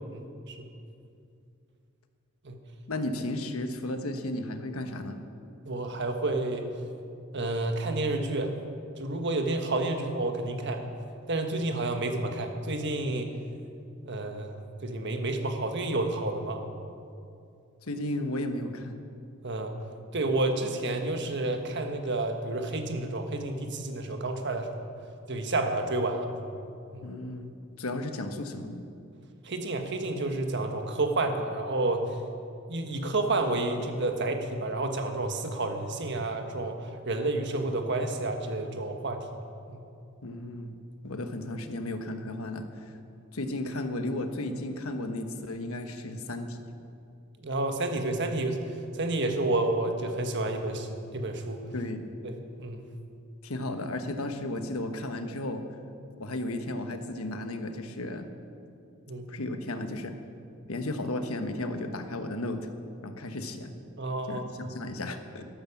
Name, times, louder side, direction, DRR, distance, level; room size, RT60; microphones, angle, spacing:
voice 1, 0.1-0.7 2.4-2.6 5.7-6.7 7.3-8.5 9.0-10.8 11.3-13.3 14.0-14.6 14.8-16.6 19.4-19.7 20.1-24.8 25.3-26.3 26.9-27.0 29.4-32.0 32.7-39.2 39.7-39.8 47.4-50.9 51.1-51.6 52.2-52.8 59.1-59.3 64.0-64.6, right 2 dB, 55° right, 5 dB, 1.4 m, -30 dB
voice 2, 2.9-5.2 17.8-19.0 27.0-27.5 27.8-28.8 40.2-40.7 41.0-43.0 43.3-46.6 51.7-52.1 53.4-55.6 56.2-58.3 59.3-60.1 60.7-62.7 63.0-63.7 64.3-65.4, left 1 dB, 85° left, 7 dB, 1.2 m, -34 dB
13.0 x 12.0 x 7.2 m, 2.5 s
head